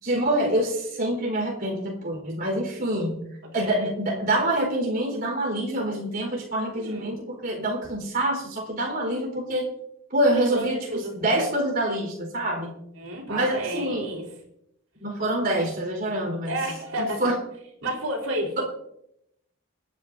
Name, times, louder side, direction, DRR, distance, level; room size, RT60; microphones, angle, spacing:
voice 1, 0.0-3.3 3.5-9.6 10.1-12.7 13.3-14.1 15.0-16.6 17.0-17.4, right 1 dB, 45° right, 0 dB, 4.3 m, -26 dB
voice 2, 3.5-3.9 6.7-7.1 10.3-11.4 13.0-14.3 16.4-17.3 17.8-18.6, right 1 dB, 90° right, 0 dB, 4.3 m, -31 dB
28.0 x 10.0 x 2.7 m, 0.79 s
head